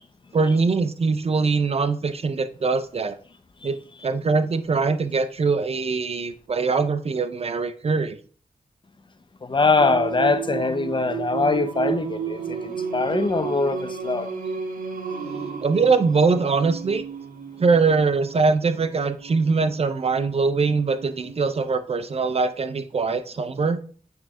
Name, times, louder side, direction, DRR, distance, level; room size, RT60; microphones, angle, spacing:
voice 1, 0.3-3.2 3.6-3.8 4.0-8.2 15.6-17.0 17.6-23.8, right 4 dB, 45° right, 0.5 m, -22 dB
voice 2, 9.4-14.3, left 3 dB, 35° left, 0.6 m, -23 dB
Singing, 9.8-21.5, right 7 dB, 85° right, 0.8 m, -33 dB
8.7 x 3.3 x 3.6 m
wide cardioid pair, 80°, 14 cm